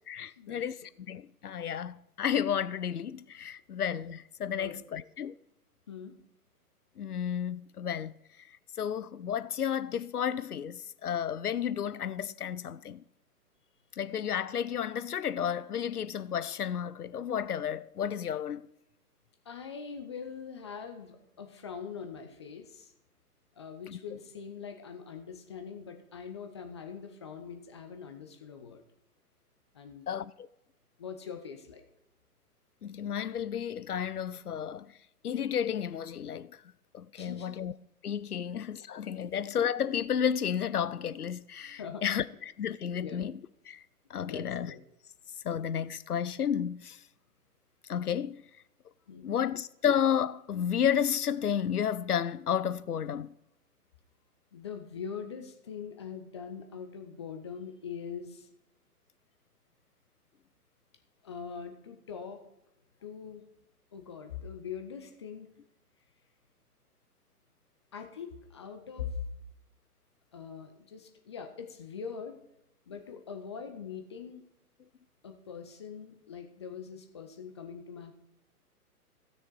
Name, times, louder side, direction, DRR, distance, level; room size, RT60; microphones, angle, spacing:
voice 1, 0.1-5.3 7.0-8.1 8.8-13.0 14.0-18.6 23.9-24.0 30.1-30.5 32.8-34.9 35.2-36.6 36.9-37.7 38.0-43.3 43.7-43.8 44.1-44.7 45.4-47.0 47.9-48.4 49.2-53.3, left 8 dB, 75° left, 0.6 m, -32 dB
voice 2, 19.5-22.9 23.6-28.8 29.7-30.1 31.0-31.8 37.2-37.6 39.2-39.3 41.8-42.0 43.0-43.2 44.3-44.8 49.1-49.3 54.5-58.5 61.2-62.4 63.0-63.4 63.9-65.5 67.9-69.2 70.3-72.4 72.9-74.4 75.2-78.1, left 6 dB, 20° left, 0.6 m, -42 dB
15.0 x 6.5 x 4.7 m
figure-of-eight pair, 125°, 46 cm